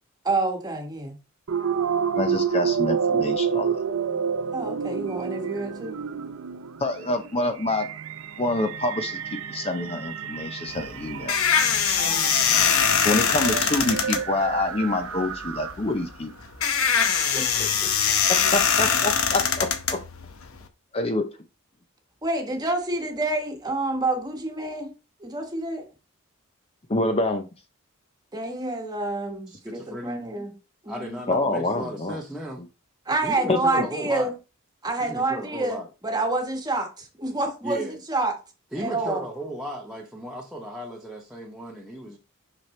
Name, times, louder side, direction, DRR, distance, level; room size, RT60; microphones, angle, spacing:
voice 1, 0.2-1.2 4.5-6.0 12.0-12.6 17.1-17.9 22.2-24.9 25.2-25.9 28.3-30.5 30.8-31.2 33.1-34.3 34.8-38.4 38.8-39.2, right 2 dB, 20° right, 1.3 m, -28 dB
sound 1, 1.5-16.0, right 7 dB, 75° right, 0.6 m, -30 dB
voice 2, 2.2-3.7 6.8-7.9 8.4-9.2 9.5-11.4 13.0-16.3 18.3-20.0 20.9-21.3 26.9-27.5 31.3-32.2 33.5-33.9, left 2 dB, 25° left, 0.6 m, -26 dB
sound 2, 10.7-20.6, left 7 dB, 75° left, 0.9 m, -23 dB
voice 3, 29.5-30.5 30.9-32.6 33.2-34.3 35.0-35.9 37.6-38.0 38.7-42.2, equal, 5° right, 0.8 m, -35 dB
5.9 x 5.8 x 3.2 m
head